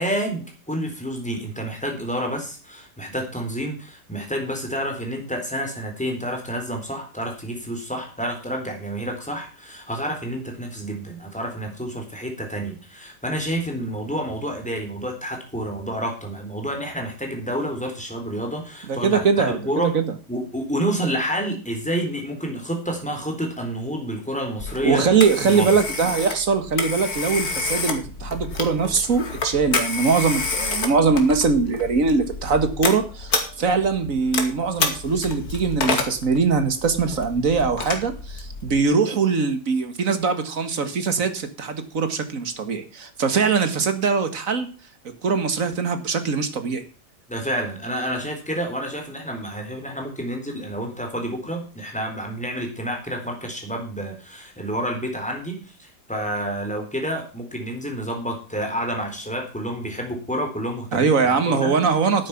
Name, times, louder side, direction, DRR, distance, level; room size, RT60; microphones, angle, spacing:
voice 1, 0.0-20.0 20.3-25.0 25.4-25.7 47.3-61.8, equal, 5° left, 2 dB, 3.9 m, -29 dB
voice 2, 18.9-20.1 24.8-44.7 45.2-46.8 60.9-62.3, right 5 dB, 55° right, 9 dB, 2.0 m, -22 dB
Telephone, 24.6-38.8, left 3 dB, 65° left, 2.7 m, -29 dB
11.5 x 9.2 x 5.9 m, 0.36 s
omnidirectional pair, 1.8 m